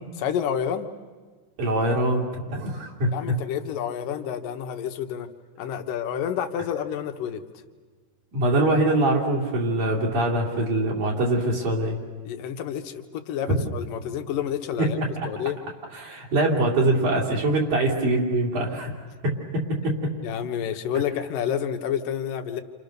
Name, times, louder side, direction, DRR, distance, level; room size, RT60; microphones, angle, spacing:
voice 1, 0.2-0.9 3.1-5.3 5.6-7.4 12.2-15.0 15.3-15.6 20.2-22.6, left 9 dB, 80° left, 7 dB, 2.9 m, -29 dB
voice 2, 1.6-3.4 8.3-12.0 13.6-13.7 14.8-14.9 15.9-18.9 19.2-20.1, right 1 dB, 65° right, -2 dB, 4.5 m, -23 dB
29.0 x 28.0 x 6.6 m, 1.5 s
omnidirectional pair, 3.8 m